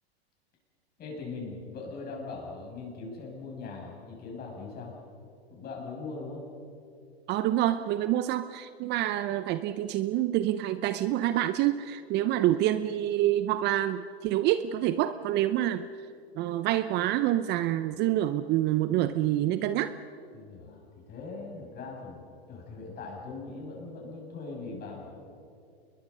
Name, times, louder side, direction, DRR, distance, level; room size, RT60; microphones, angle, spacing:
voice 1, 1.0-5.0 5.5-6.4 20.3-25.2, left 3 dB, 30° left, -1 dB, 7.7 m, -40 dB
voice 2, 7.3-15.9 16.4-20.0, right 13 dB, 35° right, 13 dB, 0.7 m, -27 dB
28.5 x 22.0 x 5.5 m, 2.5 s
hypercardioid pair, 115°, 32 cm